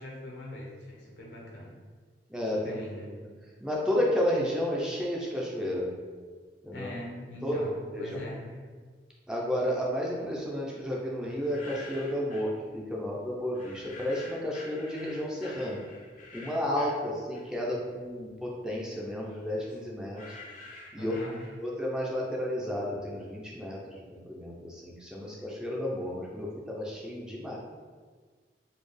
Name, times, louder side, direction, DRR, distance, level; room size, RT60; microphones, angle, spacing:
voice 1, 0.0-1.8 2.5-3.1 6.7-8.6 21.0-21.4, left 1 dB, 80° left, -2 dB, 0.9 m, -41 dB
voice 2, 2.3-2.8 3.6-5.9 6.6-6.9 7.4-8.2 9.3-15.9 16.3-20.4 20.9-21.1 21.6-27.6, equal, 5° right, -4 dB, 0.5 m, -32 dB
sound 1, 11.3-12.6 13.5-17.8 18.1-21.9, left 2 dB, 45° left, 0.6 m, -48 dB
4.1 x 2.3 x 3.3 m, 1.5 s
head